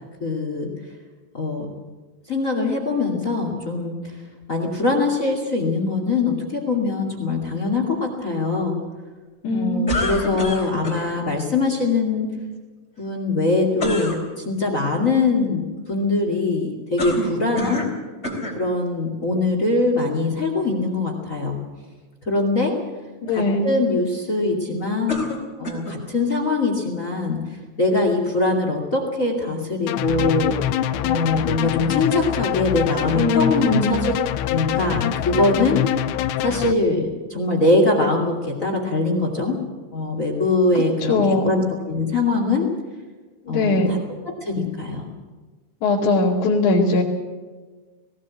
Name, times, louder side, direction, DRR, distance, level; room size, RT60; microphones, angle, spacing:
voice 1, 0.2-0.7 1.3-1.6 2.3-4.1 4.5-8.8 9.5-12.3 13.0-17.8 18.5-21.6 22.2-22.7 23.3-25.2 25.6-30.5 31.0-34.1 34.5-35.8 36.4-39.6 39.9-42.7 43.5-44.0 44.4-45.1, left 3 dB, 30° left, 3 dB, 1.4 m, -22 dB
voice 2, 9.4-9.9 10.3-10.4 23.2-23.7 33.1-34.0 41.0-41.5 43.5-43.9 45.8-47.0, left 3 dB, 50° left, -5 dB, 2.9 m, -20 dB
sound 1, 9.9-11.1 13.8-14.2 17.0-18.0 18.2-18.6 19.4-19.5 25.1-26.0, left 1 dB, 15° left, 3.3 m, -27 dB
sound 2, 29.9-36.7, left 11 dB, 85° left, 2.5 m, -25 dB
18.5 x 18.5 x 8.5 m, 1.3 s
omnidirectional pair, 5.8 m